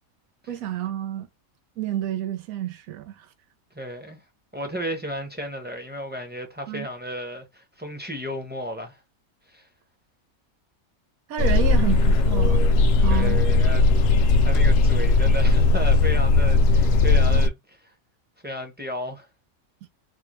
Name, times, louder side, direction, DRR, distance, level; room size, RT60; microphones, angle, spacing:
voice 1, 0.5-1.3 1.8-3.3 6.7-6.9 11.3-12.6 13.0-13.4, right 11 dB, 85° right, 1.1 m, -29 dB
voice 2, 3.7-4.2 4.5-9.0 9.5-9.7 13.1-13.9 14.2-17.9 18.4-19.3, equal, 10° right, 0.6 m, -34 dB
sound 1, 11.4-17.5, left 3 dB, 70° left, 0.9 m, -18 dB
4.2 x 2.2 x 3.0 m
omnidirectional pair, 1.5 m